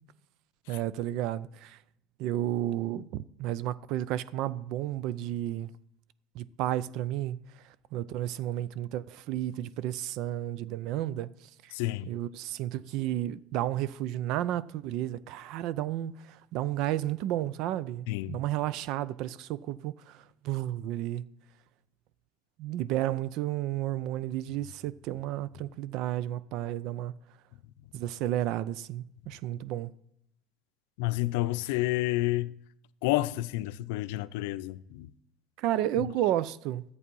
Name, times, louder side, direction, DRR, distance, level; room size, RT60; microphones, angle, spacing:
voice 1, 0.7-1.8 2.2-5.7 6.3-7.4 7.9-11.3 11.6-11.7 12.1-20.2 20.4-21.2 22.6-27.1 27.9-29.9 35.6-36.8, right 13 dB, 60° right, 0.5 m, -32 dB
voice 2, 11.7-12.1 18.1-18.4 31.0-32.5 33.0-35.1 36.0-36.1, left 17 dB, 85° left, 0.5 m, -30 dB
11.5 x 8.2 x 5.4 m
cardioid pair, 145°, 0 cm